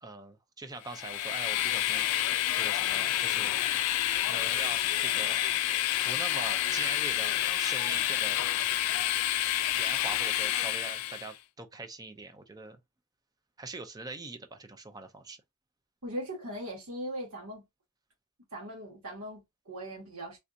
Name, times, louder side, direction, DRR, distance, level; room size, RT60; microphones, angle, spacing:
voice 1, 0.0-2.1 2.5-3.5 4.3-5.5 6.0-8.4 9.7-12.8 13.6-15.4, right 3 dB, 15° right, 0.4 m, -42 dB
Train, 0.9-11.3, left 13 dB, 90° left, 0.3 m, -29 dB
voice 2, 16.0-17.7 18.5-20.4, equal, 80° right, 1.9 m, -39 dB
3.3 x 2.7 x 2.5 m
head